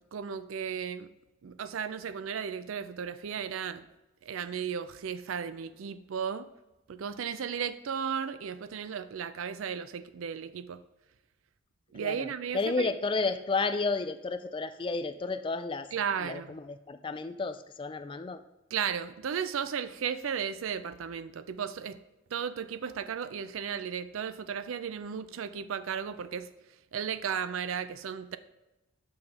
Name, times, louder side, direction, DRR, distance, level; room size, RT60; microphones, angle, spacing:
voice 1, 0.1-1.1 1.4-3.9 4.2-6.4 6.9-10.8 11.9-12.9 15.9-16.5 18.7-22.0 22.3-26.5 26.9-28.4, right 7 dB, 85° right, 13 dB, 0.4 m, -35 dB
voice 2, 12.0-15.9 16.2-18.4, left 3 dB, 25° left, 10 dB, 0.3 m, -32 dB
6.9 x 5.4 x 3.4 m, 1.0 s
head